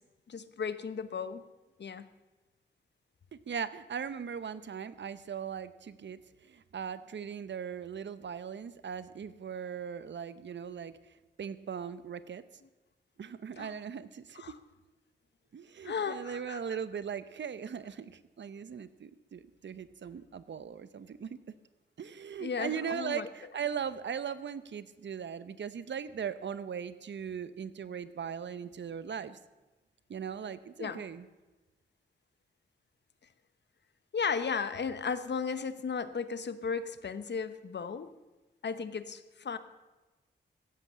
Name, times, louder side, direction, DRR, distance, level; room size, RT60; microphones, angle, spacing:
voice 1, 0.3-1.4 1.8-2.0 13.6-13.7 14.4-14.5 15.8-16.6 22.4-23.3 30.8-31.0 34.1-38.1 38.6-39.6, left 5 dB, 65° left, 13 dB, 0.9 m, -35 dB
voice 2, 3.5-11.0 11.4-12.4 13.2-14.4 15.5-21.4 22.0-29.4 30.1-31.3, right 7 dB, 70° right, 15 dB, 0.7 m, -39 dB
16.0 x 7.9 x 7.3 m, 1.1 s
wide cardioid pair, 80°, 19 cm